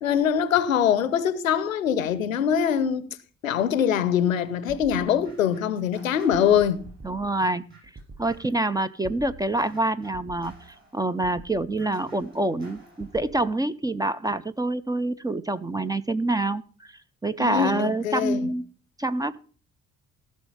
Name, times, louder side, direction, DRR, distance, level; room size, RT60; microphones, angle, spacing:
voice 1, 0.0-3.1 3.4-6.8 17.4-18.5, left 8 dB, 80° left, 0.7 m, -23 dB
sound 1, 4.7-8.6 9.0-13.4, right 4 dB, 30° right, 7.6 m, -46 dB
voice 2, 7.0-7.6 8.2-10.5 10.9-16.6 17.2-18.7 19.0-19.4, right 2 dB, 10° right, 0.4 m, -26 dB
14.5 x 6.2 x 5.4 m
figure-of-eight pair, 45°, 39 cm